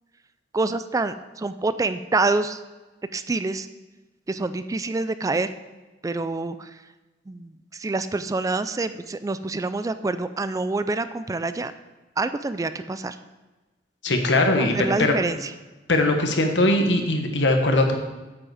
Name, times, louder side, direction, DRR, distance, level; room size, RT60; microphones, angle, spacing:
voice 1, 0.5-2.6 3.1-3.7 4.3-5.5 6.0-6.7 7.3-11.7 12.2-13.2 14.6-15.5, right 3 dB, 20° right, 12 dB, 0.3 m, -26 dB
voice 2, 14.0-15.1 15.9-18.0, left 2 dB, 85° left, 4 dB, 1.3 m, -20 dB
8.6 x 7.7 x 4.9 m, 1.2 s
head